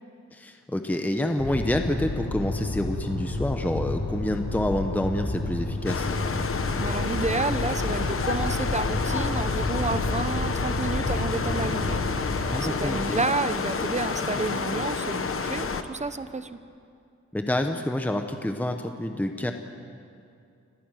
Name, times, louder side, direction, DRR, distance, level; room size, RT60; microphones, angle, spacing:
voice 1, 0.3-6.1 12.5-13.2 17.3-19.5, left 1 dB, 5° left, 6 dB, 1.0 m, -28 dB
sound 1, 1.4-12.5, left 2 dB, 90° left, 5.2 m, -30 dB
sound 2, 5.9-15.8, left 4 dB, 45° left, 1.1 m, -29 dB
voice 2, 6.7-16.6, right 3 dB, 25° right, 12 dB, 0.8 m, -30 dB
29.5 x 11.5 x 9.1 m, 2.4 s
wide cardioid pair, 125°, 29 cm